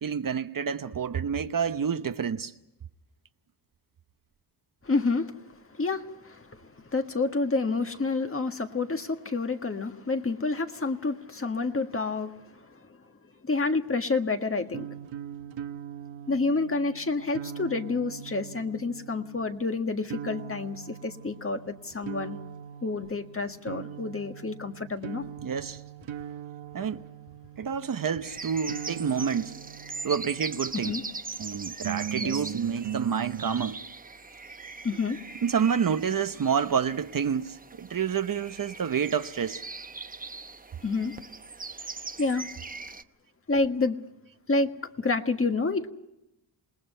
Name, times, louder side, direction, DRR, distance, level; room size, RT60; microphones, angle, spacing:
voice 1, 0.0-2.5 25.4-25.8 26.7-27.1 27.6-29.6 30.0-31.0 31.4-33.8 35.4-39.6, right 7 dB, 45° right, 0.9 m, -28 dB
voice 2, 4.8-5.4 5.8-12.3 13.4-14.9 16.3-22.4 22.8-25.2 30.7-31.0 32.1-32.3 34.8-35.2 40.8-41.1 42.2-42.5 43.5-44.0 44.5-44.7 45.0-45.9, left 3 dB, 30° left, 1.6 m, -29 dB
sound 1, 14.7-31.0 31.8-33.8, right 9 dB, 75° right, 1.1 m, -40 dB
sound 2, 28.2-43.0, right 3 dB, 20° right, 0.8 m, -41 dB
28.0 x 19.5 x 5.6 m
cardioid pair, 85°, 46 cm